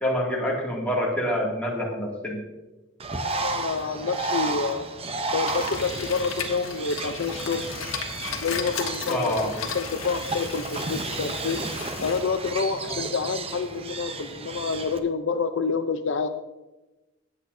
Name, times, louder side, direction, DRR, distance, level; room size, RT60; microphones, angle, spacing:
voice 1, 0.0-2.4 9.1-9.6 12.9-13.0, equal, 5° left, -4 dB, 2.2 m, -27 dB
Bird, 3.0-15.0, right 3 dB, 30° right, 0.7 m, -33 dB
voice 2, 3.2-4.9 5.3-7.6 8.4-11.6 12.0-16.3, left 5 dB, 60° left, 8 dB, 0.5 m, -28 dB
sound 1, 5.5-12.2, left 5 dB, 85° left, 1.3 m, -35 dB
18.5 x 8.4 x 2.7 m, 1.1 s
head